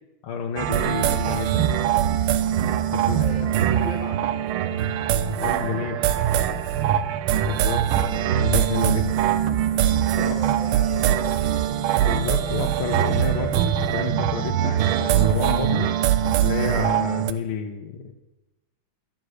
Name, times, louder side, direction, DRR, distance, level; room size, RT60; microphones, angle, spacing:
voice 1, 0.2-1.9 2.9-3.4 5.2-6.1 7.4-9.2 10.2-10.3 12.0-15.9 16.4-18.1, left 6 dB, 80° left, 1 dB, 1.9 m, -30 dB
sound 1, 0.6-17.3, right 10 dB, 80° right, 1.6 m, -22 dB
voice 2, 2.9-4.7 5.6-7.0 10.1-11.8, right 1 dB, 60° right, -1 dB, 4.0 m, -39 dB
12.5 x 10.5 x 6.4 m, 1.0 s
omnidirectional pair, 2.3 m